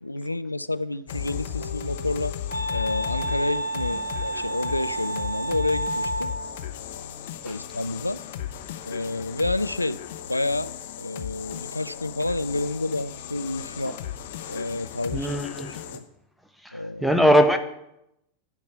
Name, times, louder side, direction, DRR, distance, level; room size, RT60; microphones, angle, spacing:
voice 1, 0.0-2.3 2.7-6.3 7.4-8.2 8.9-10.0 10.3-13.9 14.5-16.0 16.7-17.1, left 2 dB, 85° left, 0.3 m, -29 dB
sound 1, 1.1-16.0, left 11 dB, 55° left, 0.9 m, -36 dB
Wind instrument woodwind instrument, 1.1-6.6, right 1 dB, 90° right, 1.2 m, -31 dB
voice 2, 15.1-16.0 16.6-17.6, equal, ahead, 1.0 m, -22 dB
10.5 x 5.4 x 8.0 m
figure-of-eight pair, 90°, 0 cm